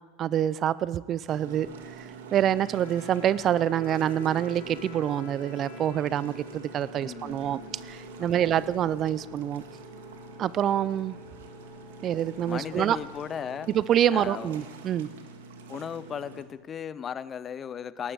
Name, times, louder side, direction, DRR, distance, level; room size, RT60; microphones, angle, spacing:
voice 1, 0.2-1.7 2.0-9.6 10.4-11.2 12.0-13.0 13.7-15.1, right 10 dB, 40° right, 19 dB, 0.4 m, -26 dB
sound 1, 1.3-16.4, right 4 dB, 75° right, 1.7 m, -45 dB
Bowed string instrument, 2.3-7.3, left 9 dB, 70° left, 1.4 m, -50 dB
sound 2, 3.7-14.2, left 3 dB, 5° right, 1.8 m, -51 dB
voice 2, 7.0-7.8 8.2-8.7 12.5-13.8 14.1-14.6 15.7-18.1, left 8 dB, 30° left, 17 dB, 0.5 m, -37 dB
19.0 x 12.0 x 4.7 m, 1.4 s
hypercardioid pair, 95°, 0 cm